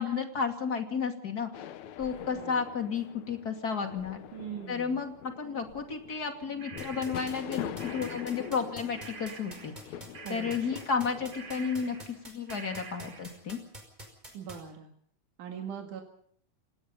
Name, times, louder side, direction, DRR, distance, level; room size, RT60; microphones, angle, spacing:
voice 1, 0.0-1.7 2.0-4.2 4.7-9.9 10.3-12.0 12.2-13.6, left 5 dB, 30° left, 5 dB, 2.7 m, -32 dB
sound 1, 1.5-12.0, left 10 dB, 75° left, 2.3 m, -44 dB
voice 2, 2.3-2.7 4.3-5.0 10.2-10.7 14.3-14.9 15.4-16.0, right 7 dB, 85° right, 2 dB, 3.6 m, -41 dB
sound 2, 6.1-8.7 9.0-12.2 12.5-13.4, right 5 dB, 45° right, 2.3 m, -48 dB
sound 3, 6.8-14.6, equal, 15° right, 5.3 m, -45 dB
27.0 x 19.0 x 5.5 m, 0.63 s
omnidirectional pair, 3.5 m